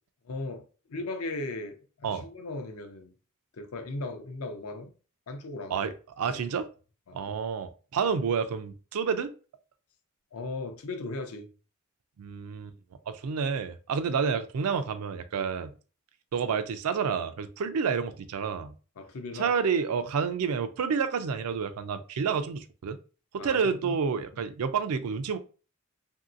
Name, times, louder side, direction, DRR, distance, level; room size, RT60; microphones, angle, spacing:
voice 1, 0.2-3.1 3.5-4.9 5.3-5.9 6.3-6.4 7.1-7.4 10.3-11.5 19.0-19.5 23.4-24.0 24.3-24.4, left 2 dB, 75° left, 0.5 m, -37 dB
voice 2, 5.7-6.7 7.1-9.3 12.2-12.7 13.1-15.7 16.3-18.7 19.4-23.0 23.4-25.4, right 6 dB, 80° right, 0.4 m, -29 dB
3.0 x 2.7 x 2.4 m
head